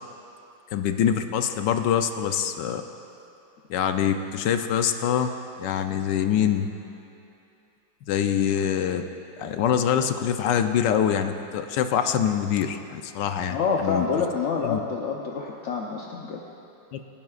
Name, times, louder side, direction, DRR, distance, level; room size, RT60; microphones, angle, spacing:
voice 1, 0.7-2.8 3.7-5.3 5.6-6.7 8.1-9.0 9.4-14.0 14.6-14.8 16.9-17.0, left 9 dB, 75° left, 7 dB, 1.2 m, -24 dB
voice 2, 13.5-16.4, left 5 dB, 55° left, -1 dB, 0.8 m, -27 dB
26.5 x 9.9 x 2.4 m, 2.8 s
omnidirectional pair, 2.0 m